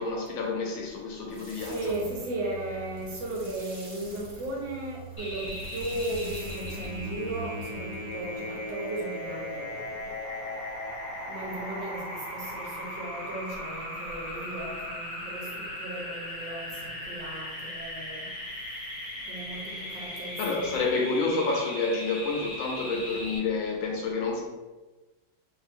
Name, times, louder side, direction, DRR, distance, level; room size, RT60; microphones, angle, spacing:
voice 1, 0.0-2.0 19.7-24.5, left 3 dB, 80° left, 0 dB, 1.4 m, -29 dB
sound 1, 1.3-7.6, right 4 dB, 45° right, 0.6 m, -46 dB
voice 2, 1.6-9.8 11.3-18.2 19.3-19.6 19.9-20.8, right 2 dB, 70° right, -2 dB, 1.4 m, -36 dB
sound 2, 5.2-23.4, left 1 dB, 40° left, 1.5 m, -37 dB
3.3 x 2.7 x 2.5 m, 1.2 s
omnidirectional pair, 2.1 m